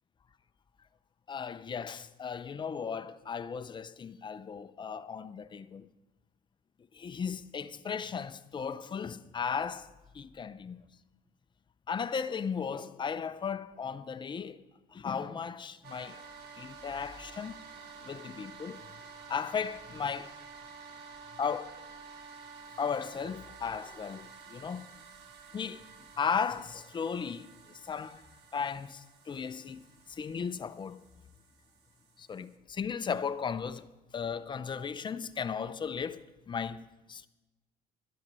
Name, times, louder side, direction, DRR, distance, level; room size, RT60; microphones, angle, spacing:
voice 1, 1.3-5.9 6.9-9.9 10.1-10.8 11.9-14.6 14.9-16.2 16.6-17.6 18.0-18.8 19.3-20.3 21.4-21.7 22.8-24.9 25.5-25.8 26.2-28.2 28.5-31.0 32.2-33.9 34.1-37.3, left 6 dB, 25° left, 0.6 m, -36 dB
sound 1, 15.8-32.5, right 5 dB, 80° right, 1.2 m, -51 dB
12.5 x 10.5 x 5.4 m
cardioid pair, 110°, 17 cm